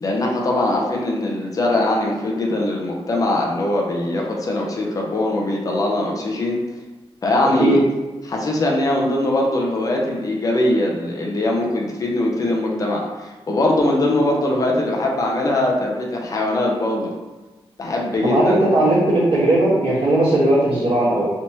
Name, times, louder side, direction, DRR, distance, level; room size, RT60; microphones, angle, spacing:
voice 1, 0.0-6.6 7.2-7.8 8.2-17.1 17.8-18.6, left 1 dB, 35° left, -1 dB, 0.5 m, -21 dB
voice 2, 18.2-21.3, right 1 dB, 85° right, -14 dB, 1.3 m, -17 dB
3.3 x 3.0 x 2.7 m, 1.2 s
wide cardioid pair, 165°, 10 cm